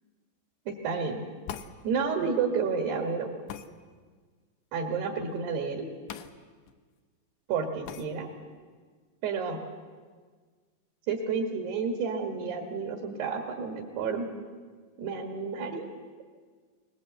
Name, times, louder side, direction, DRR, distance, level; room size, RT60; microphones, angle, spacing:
voice 1, 0.7-1.2 1.8-3.3 4.7-5.9 7.5-8.3 9.2-9.6 11.1-14.3 15.0-15.9, right 5 dB, 70° right, 2 dB, 3.7 m, -30 dB
sound 1, 1.5-1.8 3.5-3.7 6.1-6.3 6.7-6.8 7.9-8.1, left 9 dB, 80° left, 3.1 m, -39 dB
23.0 x 20.0 x 7.9 m, 1.5 s
omnidirectional pair, 5.0 m